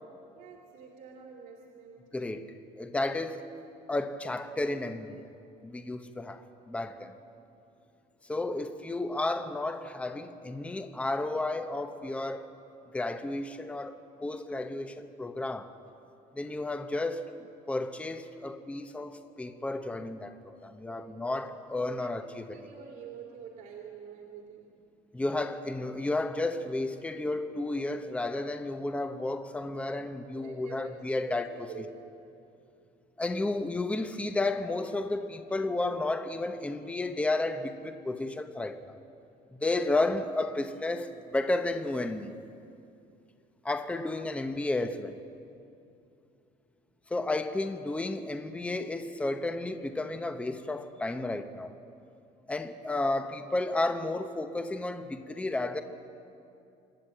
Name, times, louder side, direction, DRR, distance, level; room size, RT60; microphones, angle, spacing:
voice 1, 0.3-2.1 6.9-7.3 20.8-22.1 22.5-24.7 30.3-31.4 31.7-32.0 43.8-43.9, right 7 dB, 65° right, 0 dB, 2.7 m, -47 dB
voice 2, 2.1-2.4 2.8-3.4 3.9-5.3 5.6-7.1 8.3-12.5 12.9-15.7 16.3-17.3 17.7-22.6 25.1-31.7 33.2-39.0 39.5-42.3 43.6-45.2 47.1-51.7 52.5-55.8, left 2 dB, 10° left, 7 dB, 0.9 m, -32 dB
26.5 x 11.0 x 8.9 m, 2.6 s
cardioid pair, 135°, 16 cm